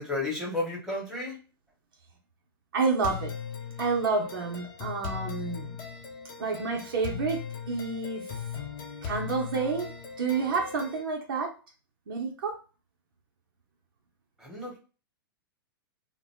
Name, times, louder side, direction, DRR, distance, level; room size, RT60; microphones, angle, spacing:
voice 1, 0.0-1.4 14.4-14.8, left 2 dB, 5° right, -2 dB, 1.2 m, -32 dB
voice 2, 2.7-3.3 3.8-5.8 6.4-7.4 7.7-8.3 9.0-9.9 10.2-11.5 12.1-12.6, right 4 dB, 65° right, 1 dB, 0.7 m, -29 dB
sound 1, 3.0-11.0, left 7 dB, 45° left, 0.7 m, -38 dB
2.2 x 2.0 x 3.4 m, 0.34 s
figure-of-eight pair, 105°, 12 cm